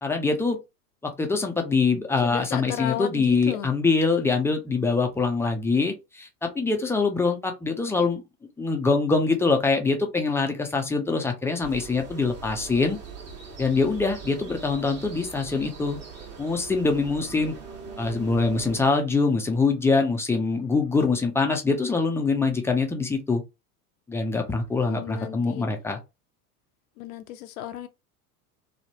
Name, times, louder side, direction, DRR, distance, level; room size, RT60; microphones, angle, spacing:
voice 1, 0.0-0.6 1.0-8.2 8.6-13.0 13.6-16.0 16.4-17.5 18.0-23.4 24.1-26.0, left 4 dB, 5° left, 0.3 m, -24 dB
voice 2, 2.2-3.7 24.8-25.7 27.0-27.9, left 12 dB, 70° left, 0.5 m, -34 dB
sound 1, 11.6-18.9, right 5 dB, 35° right, 1.1 m, -41 dB
3.0 x 2.0 x 2.8 m
hypercardioid pair, 80°, 45 cm